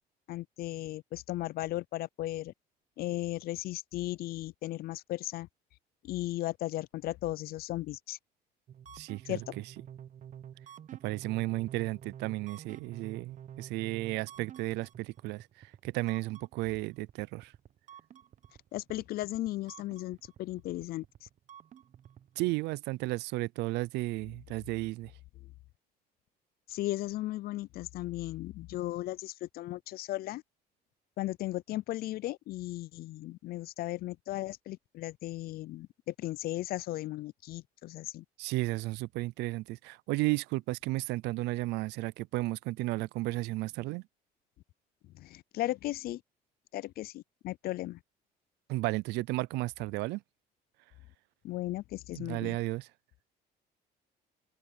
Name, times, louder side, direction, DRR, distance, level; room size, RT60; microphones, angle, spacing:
voice 1, 0.3-2.5 3.0-5.5 6.0-8.2 9.3-9.4 18.7-21.0 26.7-30.4 31.2-38.2 45.1-46.2 46.7-48.0 51.4-52.6, left 16 dB, 65° left, 0.4 m, -36 dB
sound 1, 8.7-22.5, right 9 dB, 50° right, 0.9 m, -50 dB
voice 2, 8.9-9.6 11.0-17.5 22.4-25.1 38.4-44.0 48.7-50.2 52.2-52.9, right 20 dB, 90° right, 0.5 m, -33 dB
cardioid pair, 110°, 17 cm